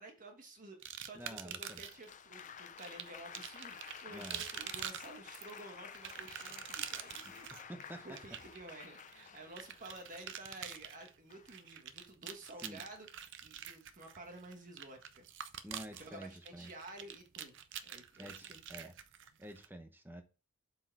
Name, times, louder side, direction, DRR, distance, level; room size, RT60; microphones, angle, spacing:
voice 1, 0.0-7.7 7.9-13.1 13.4-15.5 16.0-17.6 17.8-18.9, right 2 dB, 35° right, 1.4 m, -52 dB
sound 1, 0.8-2.1 2.8-19.7, right 9 dB, 55° right, 0.6 m, -46 dB
voice 2, 1.1-1.8 4.1-4.4 7.5-8.2 12.6-12.8 15.6-16.7 18.2-18.9 19.4-20.2, equal, 10° right, 0.9 m, -49 dB
Applause, 1.6-10.5 11.3-11.7, left 7 dB, 35° left, 0.5 m, -52 dB
7.7 x 4.6 x 4.6 m
head